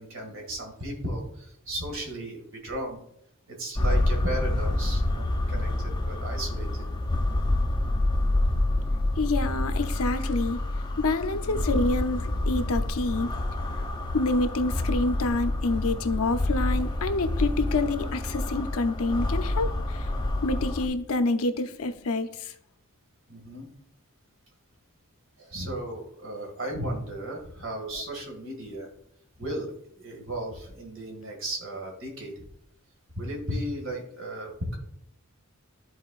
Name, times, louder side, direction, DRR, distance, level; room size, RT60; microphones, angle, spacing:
voice 1, 0.0-3.0 3.5-6.8 11.5-11.6 17.4-17.7 23.3-23.7 25.4-28.9 29.4-29.7 30.0-32.5 33.2-34.8, right 1 dB, 60° right, 2 dB, 2.0 m, -35 dB
sound 1, 3.8-20.9, left 1 dB, 20° left, 0.7 m, -27 dB
voice 2, 9.2-10.6 11.0-13.3 13.8-13.9 14.1-20.1 20.4-22.5, left 2 dB, 80° left, 8 dB, 0.7 m, -27 dB
12.5 x 4.3 x 2.4 m, 0.72 s
head